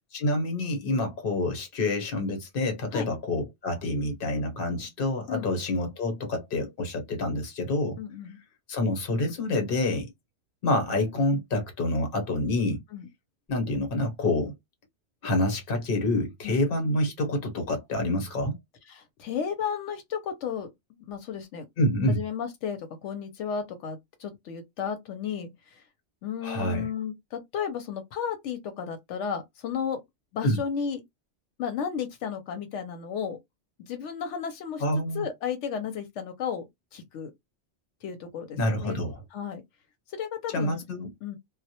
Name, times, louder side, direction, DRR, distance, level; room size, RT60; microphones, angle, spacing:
voice 1, 0.1-8.0 8.7-10.1 10.6-12.8 13.5-14.5 15.2-18.6 21.8-22.2 26.4-26.9 30.4-30.6 34.8-35.3 38.6-39.2 40.5-41.1, left 1 dB, 55° left, 1.0 m, -27 dB
voice 2, 8.0-8.4 12.9-13.1 16.4-16.6 18.9-21.6 22.1-25.8 26.2-30.0 30.3-31.0 31.6-33.4 33.8-34.8 35.1-37.3 38.0-39.0 39.3-39.6 40.1-40.8 41.2-41.4, left 7 dB, 85° left, 0.9 m, -33 dB
2.1 x 2.1 x 2.7 m
omnidirectional pair, 1.2 m